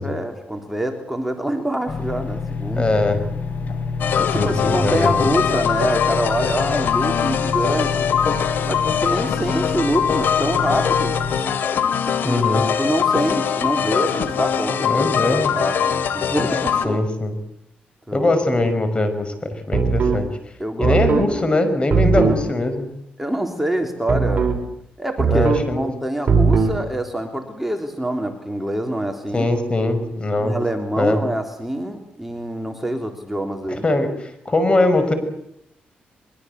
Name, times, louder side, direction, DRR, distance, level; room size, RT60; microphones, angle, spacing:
voice 1, 0.0-2.9 4.2-11.2 12.1-12.4 12.8-15.0 15.4-17.0 18.1-18.3 20.6-21.0 21.3-21.4 23.2-24.5 25.0-25.5 25.7-29.5 30.4-33.8, right 1 dB, 5° right, 4 dB, 3.5 m, -25 dB
sound 1, 1.9-11.4, left 4 dB, 50° left, 3.6 m, -28 dB
voice 2, 2.7-3.2 4.3-5.1 12.2-12.6 14.8-15.5 16.8-17.4 18.1-20.3 20.8-22.9 25.3-25.9 29.3-30.5 31.0-31.2 33.7-35.1, left 2 dB, 30° left, 9 dB, 5.7 m, -21 dB
sound 2, 4.0-16.8, left 7 dB, 75° left, 2.7 m, -22 dB
sound 3, 19.7-20.2 20.8-21.3 21.9-22.4 24.1-24.6 25.2-25.7 26.3-26.8, right 5 dB, 45° right, 5.6 m, -18 dB
23.0 x 23.0 x 8.2 m, 0.76 s
cardioid pair, 80°, 3 cm